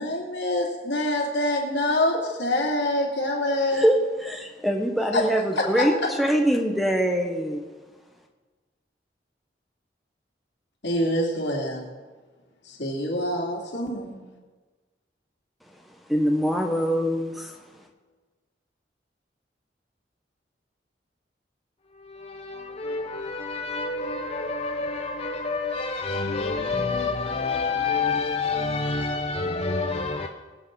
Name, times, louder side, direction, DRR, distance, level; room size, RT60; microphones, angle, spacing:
voice 1, 0.0-3.8 5.1-5.3 5.6-6.1 10.8-11.9 12.7-14.2, left 1 dB, 85° left, 2.8 m, -25 dB
voice 2, 3.7-7.6 16.1-17.5, equal, ahead, 1.1 m, -23 dB
voice 3, 21.9-30.3, left 4 dB, 35° left, 0.7 m, -28 dB
23.0 x 8.1 x 4.0 m
head